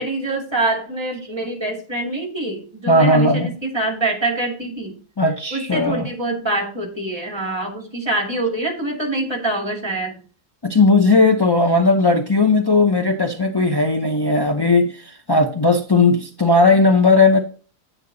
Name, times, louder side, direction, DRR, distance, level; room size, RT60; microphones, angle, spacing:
voice 1, 0.0-5.0 5.5-10.2, right 2 dB, 15° right, 2 dB, 2.2 m, -25 dB
voice 2, 2.9-3.5 5.2-6.1 10.6-17.4, left 3 dB, 40° left, 2 dB, 0.3 m, -16 dB
9.5 x 9.1 x 2.7 m, 0.38 s
omnidirectional pair, 1.7 m